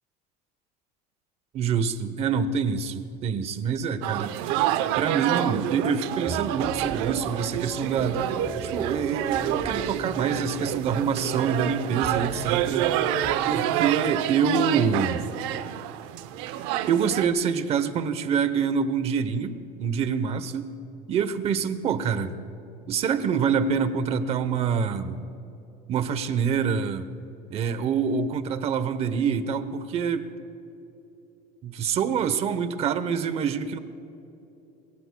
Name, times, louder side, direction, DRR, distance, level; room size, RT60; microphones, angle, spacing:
voice 1, 1.5-4.3 5.0-8.2 8.5-12.9 13.5-15.3 16.9-20.7 21.1-22.4 22.9-25.2 25.9-27.1 27.5-30.3 31.6-33.8, right 6 dB, 30° right, 12 dB, 0.8 m, -26 dB
sound 1, 4.0-17.3, right 12 dB, 70° right, 0.7 m, -28 dB
sound 2, 6.3-13.4, left 1 dB, 5° left, 0.6 m, -39 dB
23.5 x 23.0 x 2.2 m, 2.9 s
cardioid pair, 170°, 19 cm